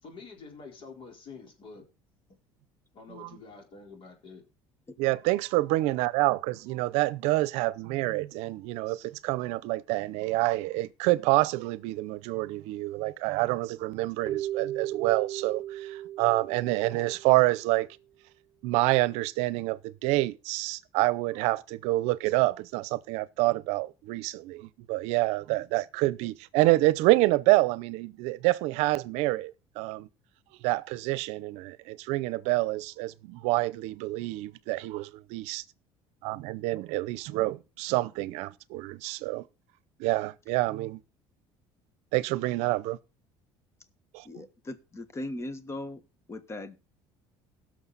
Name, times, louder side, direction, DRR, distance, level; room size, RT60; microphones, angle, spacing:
voice 1, 0.0-1.9 2.9-4.4, left 4 dB, 55° left, 4.0 m, -47 dB
voice 2, 5.0-17.9 18.6-30.1 30.6-35.6 36.2-39.4 40.0-41.0 42.1-43.0 44.1-44.4, right 19 dB, 80° right, 0.7 m, -27 dB
Keyboard (musical), 14.3-17.5, right 12 dB, 35° right, 0.6 m, -36 dB
voice 3, 44.2-46.0 46.3-46.8, left 1 dB, 25° left, 1.4 m, -38 dB
17.0 x 6.5 x 4.0 m
supercardioid pair, 105°, 11 cm